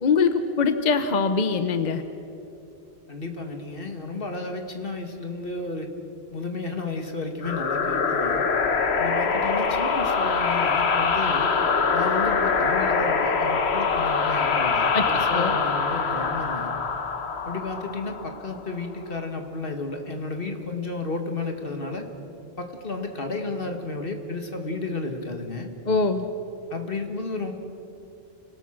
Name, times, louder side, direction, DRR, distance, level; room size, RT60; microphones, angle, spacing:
voice 1, 0.0-2.0 14.9-15.6 25.9-26.3, left 4 dB, 45° left, 9 dB, 1.0 m, -23 dB
voice 2, 3.1-5.9 6.3-8.4 9.0-11.5 11.9-16.7 17.4-22.1 22.6-25.7 26.7-27.5, left 3 dB, 60° left, 5 dB, 2.1 m, -32 dB
sound 1, 7.4-18.8, left 5 dB, 90° left, 1.4 m, -24 dB
28.0 x 18.5 x 6.5 m, 2.9 s
omnidirectional pair, 1.1 m